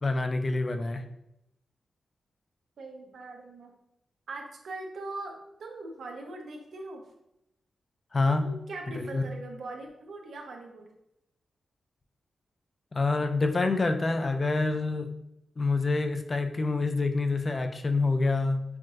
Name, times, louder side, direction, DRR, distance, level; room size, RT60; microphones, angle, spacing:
voice 1, 0.0-1.0 8.1-8.5 8.9-9.2 12.9-15.1 15.6-18.6, left 3 dB, 30° left, 7 dB, 0.3 m, -27 dB
voice 2, 2.8-3.7 4.3-7.1 8.4-10.9, right 2 dB, 65° right, 2 dB, 0.7 m, -41 dB
5.7 x 2.5 x 2.5 m, 0.84 s
wide cardioid pair, 150°, 0 cm